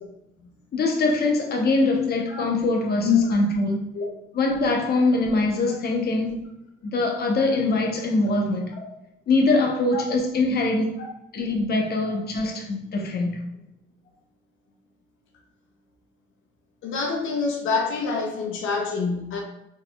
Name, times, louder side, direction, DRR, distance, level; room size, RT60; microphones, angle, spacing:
voice 1, 0.7-3.9 4.3-6.4 6.8-8.7 9.3-11.0 11.3-13.4, left 2 dB, 55° left, 1 dB, 0.9 m, -23 dB
voice 2, 16.8-19.4, left 6 dB, 85° left, 0 dB, 0.7 m, -25 dB
4.3 x 3.8 x 2.3 m, 0.89 s
cardioid pair, 90°, 20 cm